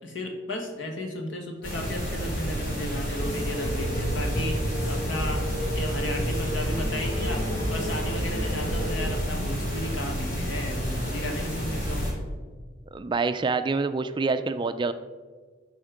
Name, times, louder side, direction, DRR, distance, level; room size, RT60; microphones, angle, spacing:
voice 1, 0.0-5.4 5.7-7.4 7.7-12.0, left 1 dB, 75° left, 2 dB, 1.6 m, -34 dB
sound 1, 1.6-12.1, equal, 50° left, 2.8 m, -30 dB
sound 2, 3.2-9.1, equal, 20° left, 1.2 m, -32 dB
voice 2, 12.9-14.9, right 4 dB, 25° right, 10 dB, 0.3 m, -26 dB
12.0 x 4.3 x 5.1 m, 1.5 s
head